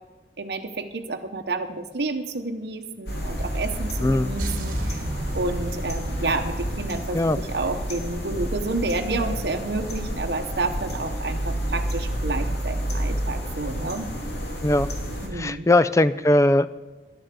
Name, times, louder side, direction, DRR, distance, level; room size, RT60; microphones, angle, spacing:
voice 1, 0.4-5.0 5.3-14.1 15.2-15.7, right 3 dB, 65° right, 4 dB, 0.8 m, -30 dB
sound 1, 3.1-15.3, equal, 65° left, 2.8 m, -30 dB
voice 2, 4.0-4.4 7.1-7.4 14.6-14.9 15.3-16.8, left 1 dB, 15° left, 15 dB, 0.3 m, -20 dB
sound 2, 4.4-8.5, right 1 dB, 50° right, 1.2 m, -33 dB
11.5 x 9.2 x 6.7 m, 1.2 s
head